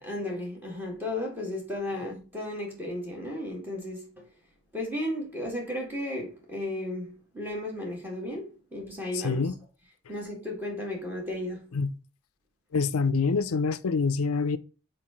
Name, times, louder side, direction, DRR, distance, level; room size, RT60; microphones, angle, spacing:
voice 1, 0.0-4.3 4.7-9.5 10.1-11.6, left 1 dB, 10° right, 2.0 m, -34 dB
voice 2, 9.1-9.5 11.7-11.9 12.7-14.6, left 4 dB, 75° left, 0.5 m, -26 dB
4.8 x 4.7 x 5.6 m
head